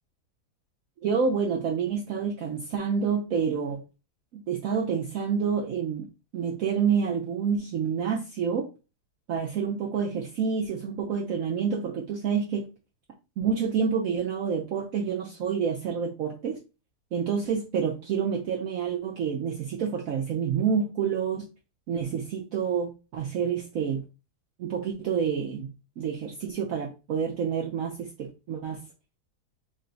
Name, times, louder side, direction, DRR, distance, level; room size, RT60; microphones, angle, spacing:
voice 1, 1.0-3.8 4.3-8.7 9.3-12.7 13.4-16.6 17.1-21.5 21.9-24.0 24.6-25.7 26.0-28.8, right 6 dB, 65° right, -1 dB, 1.0 m, -28 dB
3.8 x 2.2 x 3.8 m, 0.31 s
omnidirectional pair, 1.8 m